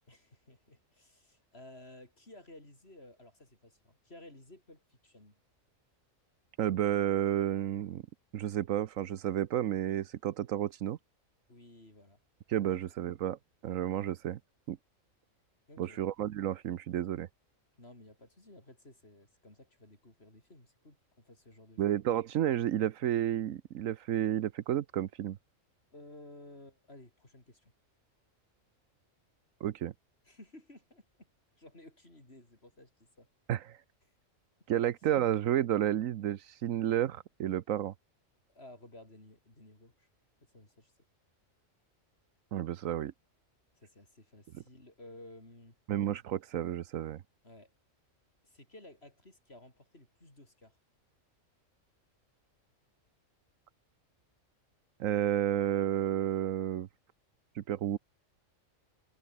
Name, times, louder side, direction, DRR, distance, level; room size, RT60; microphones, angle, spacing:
voice 1, 0.1-5.4 11.5-12.2 12.7-12.9 15.7-16.0 17.8-21.9 25.9-27.7 30.2-31.3 31.6-33.3 34.8-34.9 38.5-40.1 40.5-40.9 43.8-45.8 47.4-47.7 48.4-50.8, left 1 dB, 50° left, 6.5 m, -55 dB
voice 2, 6.6-8.0 8.3-11.0 12.5-14.4 14.7-14.8 15.8-17.3 21.8-25.4 29.6-29.9 33.5-33.8 34.7-37.9 42.5-43.1 45.9-47.2 55.0-56.9 57.5-58.0, right 11 dB, 80° right, 1.1 m, -31 dB
omnidirectional pair, 1.4 m